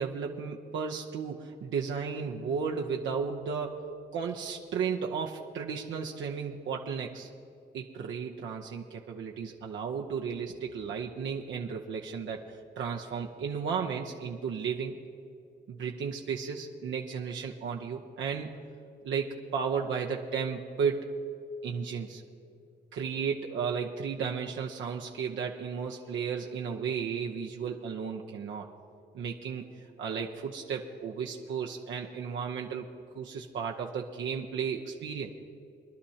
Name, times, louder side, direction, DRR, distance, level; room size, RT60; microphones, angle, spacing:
voice 1, 0.0-3.8 4.1-7.3 7.7-14.9 15.7-18.5 19.0-21.1 21.6-22.2 22.9-28.7 29.1-29.6 30.0-32.9 33.1-35.3, right 6 dB, 80° right, 0 dB, 0.8 m, -34 dB
24.0 x 11.5 x 2.8 m, 2.6 s
cardioid pair, 125°, 19 cm